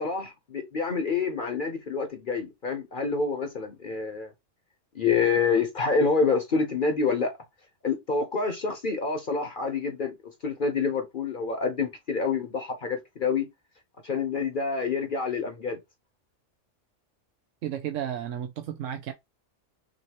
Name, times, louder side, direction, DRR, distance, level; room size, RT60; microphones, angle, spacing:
voice 1, 0.0-4.3 4.9-7.3 7.8-10.2 10.4-13.5 14.0-15.8, left 4 dB, 45° left, 1.0 m, -27 dB
voice 2, 17.6-19.1, right 10 dB, 80° right, 1.0 m, -33 dB
6.4 x 2.7 x 3.0 m
omnidirectional pair, 1.3 m